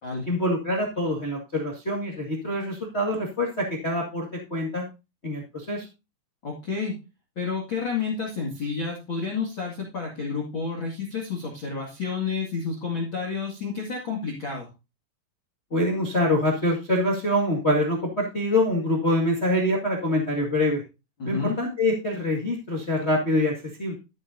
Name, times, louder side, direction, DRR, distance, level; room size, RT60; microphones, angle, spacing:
voice 1, 0.3-4.8 5.2-5.8 15.7-20.8 21.2-23.9, left 1 dB, 75° left, -2 dB, 0.6 m, -25 dB
voice 2, 6.4-6.9 7.4-14.7 21.2-21.6, left 5 dB, 35° left, -1 dB, 2.1 m, -30 dB
13.5 x 8.3 x 2.7 m, 0.27 s
omnidirectional pair, 5.0 m